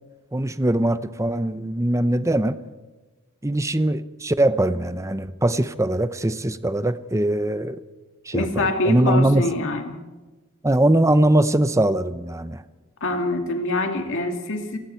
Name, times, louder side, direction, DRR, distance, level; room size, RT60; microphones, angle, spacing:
voice 1, 0.3-2.6 3.4-7.8 8.3-9.4 10.6-12.6, right 1 dB, 15° right, 13 dB, 0.7 m, -21 dB
voice 2, 8.3-10.0 13.0-14.8, left 2 dB, 60° left, 4 dB, 2.4 m, -25 dB
29.5 x 20.0 x 4.5 m, 1.2 s
head